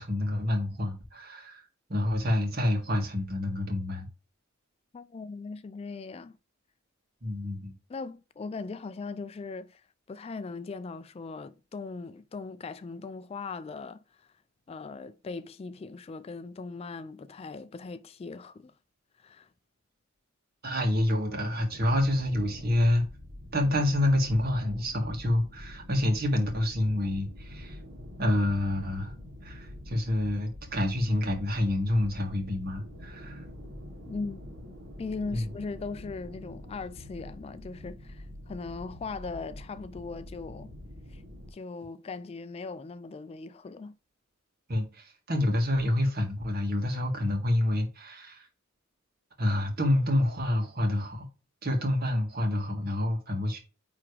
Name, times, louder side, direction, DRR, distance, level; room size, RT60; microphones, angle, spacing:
voice 1, 0.0-4.1 7.2-7.7 20.6-23.1 23.5-27.8 28.2-29.2 29.4-33.4 35.3-35.5 44.7-48.5 49.4-51.3 51.6-53.6, left 1 dB, 50° right, 1.9 m, -28 dB
voice 2, 4.9-6.4 7.9-14.3 14.7-18.7 19.2-19.5 34.1-34.4 35.0-40.7 41.1-41.2 41.5-43.9, left 4 dB, 30° left, 0.3 m, -39 dB
sound 1, 21.7-41.5, left 1 dB, 70° right, 2.1 m, -45 dB
9.5 x 3.5 x 3.3 m
head